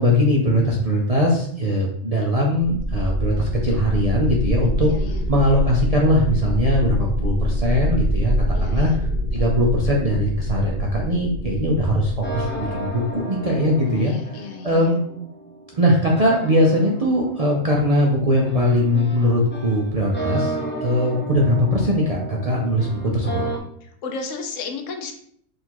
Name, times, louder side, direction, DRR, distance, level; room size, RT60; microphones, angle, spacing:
voice 1, 0.0-4.9 5.3-8.3 8.6-14.1 14.6-15.0 15.7-20.5 20.8-23.4, equal, 50° right, -2 dB, 0.4 m, -20 dB
sound 1, 2.6-13.2, equal, 50° left, 0.7 m, -25 dB
voice 2, 4.8-5.2 8.5-9.0 13.9-14.9 23.8-25.1, left 4 dB, 75° left, 4 dB, 1.0 m, -34 dB
sound 2, 12.2-23.6, right 2 dB, 15° left, 0.4 m, -33 dB
3.8 x 2.6 x 4.5 m, 0.67 s
omnidirectional pair, 1.3 m